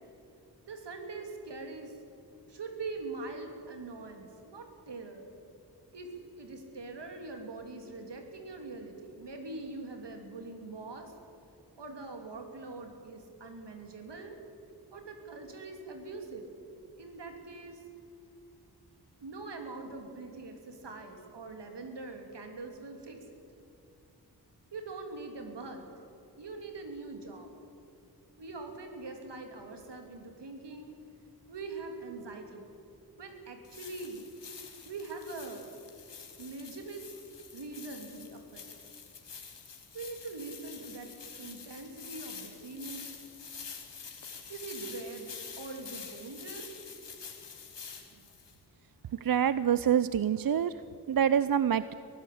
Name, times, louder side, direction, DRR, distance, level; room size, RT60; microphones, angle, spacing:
voice 1, 0.7-2.0 2.5-5.3 5.9-11.1 11.8-14.4 14.9-16.4 17.0-17.8 19.2-23.4 24.7-25.8 26.4-27.5 28.4-31.0 31.5-32.7 33.2-34.2 34.8-35.6 36.4-37.0 37.5-38.7 39.9-41.1 41.4-43.1 44.5-46.7, right 3 dB, 80° right, 4 dB, 3.3 m, -43 dB
sound 1, 33.6-48.5, left 6 dB, 85° left, 2.4 m, -47 dB
voice 2, 49.2-50.7 51.1-51.9, right 9 dB, 55° right, 15 dB, 0.6 m, -26 dB
23.0 x 15.5 x 8.6 m, 2.7 s
wide cardioid pair, 90°, 41 cm